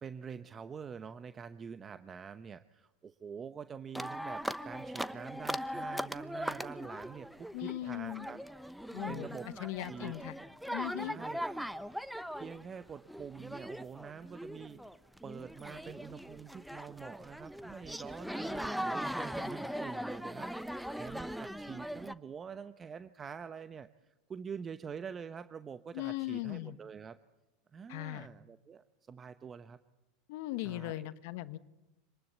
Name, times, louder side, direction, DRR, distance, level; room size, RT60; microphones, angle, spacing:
voice 1, 0.0-8.4 8.7-10.1 11.0-11.5 11.9-12.1 12.3-27.2 27.7-29.8 30.6-31.1, right 6 dB, 25° right, 12 dB, 0.9 m, -46 dB
sound 1, 3.9-22.1, equal, ahead, 1.0 m, -40 dB
voice 2, 7.5-8.3 8.9-9.3 9.6-10.3 10.7-11.2 25.9-26.8 27.9-28.3 30.3-31.6, left 16 dB, 65° left, 13 dB, 1.2 m, -38 dB
25.5 x 19.5 x 8.2 m, 0.98 s
hypercardioid pair, 90°, 0 cm